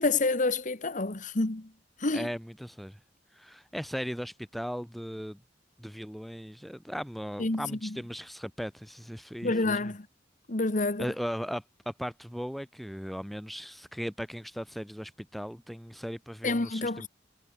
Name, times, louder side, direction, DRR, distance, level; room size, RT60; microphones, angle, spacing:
voice 1, 0.0-1.6 2.0-2.3 7.4-7.7 9.4-10.0 10.5-11.1 16.4-17.1, left 3 dB, 45° left, 1.4 m, -28 dB
voice 2, 2.1-3.0 3.3-5.4 5.8-9.9 11.0-17.1, equal, ahead, 2.4 m, -37 dB
head